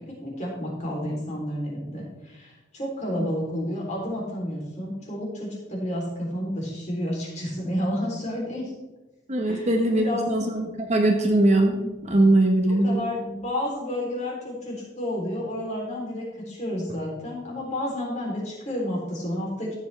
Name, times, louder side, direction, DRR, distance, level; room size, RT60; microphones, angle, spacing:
voice 1, 0.0-8.7 9.4-10.3 11.1-11.2 12.7-19.8, left 1 dB, 35° left, -3 dB, 3.4 m, -31 dB
voice 2, 9.3-13.0, right 1 dB, 35° right, 3 dB, 1.2 m, -21 dB
14.0 x 8.2 x 3.4 m, 1.1 s
head